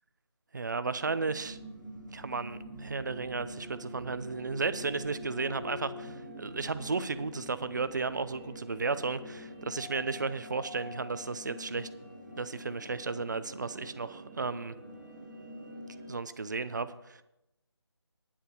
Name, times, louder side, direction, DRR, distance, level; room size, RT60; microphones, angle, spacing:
voice 1, 0.5-1.6 2.1-11.9 12.4-14.7 16.1-17.2, right 4 dB, 45° right, 13 dB, 0.6 m, -34 dB
sound 1, 1.0-16.1, equal, 5° right, 2.3 m, -45 dB
10.0 x 6.8 x 7.0 m, 0.89 s
figure-of-eight pair, 160°, 14 cm